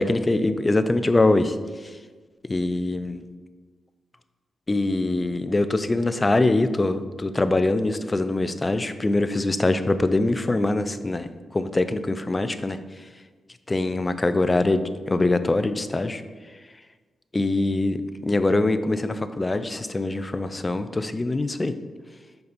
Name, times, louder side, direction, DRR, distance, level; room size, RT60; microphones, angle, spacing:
voice 1, 0.0-1.6 1.8-1.9 2.4-3.2 4.7-12.8 13.7-16.2 17.3-21.7, left 2 dB, 25° left, 11 dB, 0.5 m, -23 dB
6.9 x 5.0 x 4.1 m, 1.4 s
cardioid pair, 70°, 0 cm